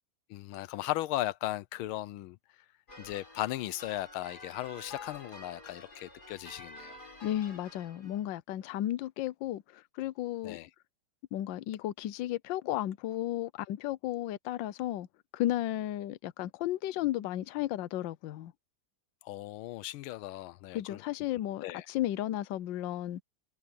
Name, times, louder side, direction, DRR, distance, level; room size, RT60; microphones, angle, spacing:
voice 1, 0.3-2.4 3.0-7.0 10.4-10.7 19.2-21.0 21.3-21.8, left 15 dB, 90° left, 1.5 m, -37 dB
sound 1, 2.9-8.3, left 3 dB, 50° left, 6.5 m, -49 dB
voice 2, 7.2-10.6 11.3-15.1 15.3-18.5 20.7-23.2, left 13 dB, 70° left, 1.3 m, -34 dB
omnidirectional pair, 2.2 m